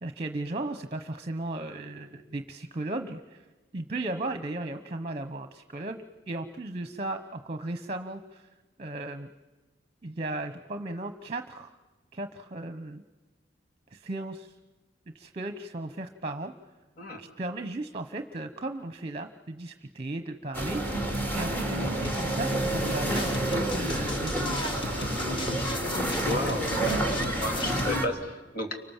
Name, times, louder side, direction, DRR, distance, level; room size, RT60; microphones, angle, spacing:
voice 1, 0.0-3.4 3.7-8.5 8.8-9.3 10.0-11.8 12.1-13.0 13.9-14.6 15.1-16.5 17.2-24.7, right 2 dB, 35° right, 8 dB, 1.0 m, -36 dB
sound 1, 20.5-28.1, right 1 dB, 10° left, 3.0 m, -29 dB
sound 2, 22.0-28.0, left 2 dB, 25° left, 1.3 m, -37 dB
voice 2, 24.9-25.6 26.2-26.7 27.4-28.7, left 1 dB, 55° left, 3 dB, 3.0 m, -33 dB
30.0 x 25.5 x 7.4 m, 1.2 s
head